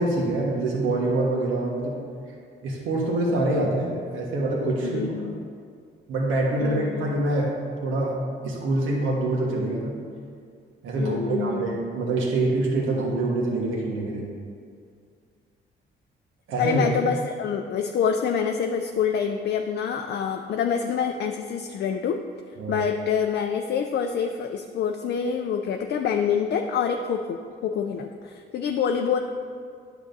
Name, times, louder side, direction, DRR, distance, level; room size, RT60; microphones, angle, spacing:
voice 1, 0.0-1.9 2.6-5.3 6.1-7.5 7.8-8.1 8.4-9.9 10.8-14.2 16.5-16.8 22.6-22.8, right 2 dB, 85° right, -2 dB, 1.4 m, -25 dB
voice 2, 4.8-5.3 6.6-7.1 11.0-11.7 16.6-22.2 22.7-29.2, left 7 dB, 60° left, 4 dB, 0.4 m, -26 dB
9.8 x 7.0 x 2.7 m, 2.2 s
cardioid pair, 90°, 20 cm